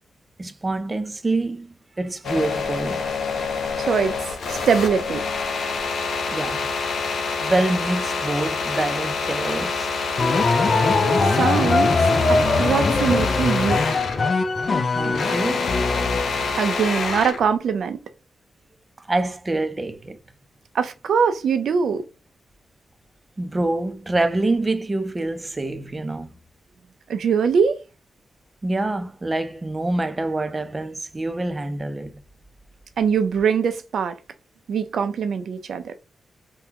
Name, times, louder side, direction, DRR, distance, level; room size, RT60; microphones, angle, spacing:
voice 1, 0.4-3.1 6.3-6.7 7.4-9.9 14.9-15.7 19.0-20.2 23.4-26.3 28.6-32.2, right 2 dB, 25° right, 0.5 m, -26 dB
sound 1, 2.2-14.3 14.6-17.5, left 4 dB, 90° left, 0.8 m, -27 dB
voice 2, 3.8-5.2 11.3-12.0 12.3-13.9 16.6-18.0 20.7-22.1 27.1-27.8 33.0-34.2 34.7-35.9, right 6 dB, 80° right, 0.5 m, -22 dB
sound 2, 10.2-16.7, left 3 dB, 50° left, 0.6 m, -21 dB
3.6 x 2.2 x 2.8 m
wide cardioid pair, 105°, 0 cm